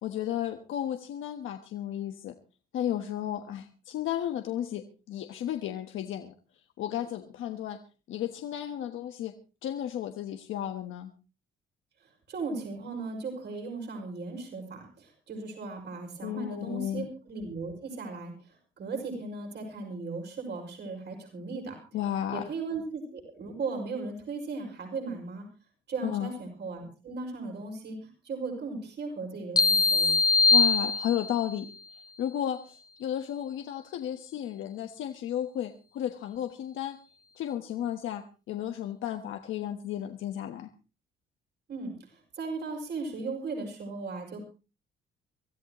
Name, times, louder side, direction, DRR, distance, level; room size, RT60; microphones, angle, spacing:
voice 1, 0.0-2.3 2.7-6.3 6.8-7.8 8.1-9.3 9.6-11.1 16.2-17.1 21.9-22.4 26.0-26.3 30.5-31.7 32.2-37.0 37.4-40.7, left 11 dB, 80° left, 5 dB, 1.3 m, -33 dB
voice 2, 12.3-21.7 22.3-25.5 25.9-30.1 41.7-44.4, right 4 dB, 60° right, 2 dB, 5.8 m, -37 dB
sound 1, 29.6-31.5, left 4 dB, 20° left, 1.1 m, -22 dB
24.5 x 14.0 x 3.1 m, 0.33 s
cardioid pair, 90°, 20 cm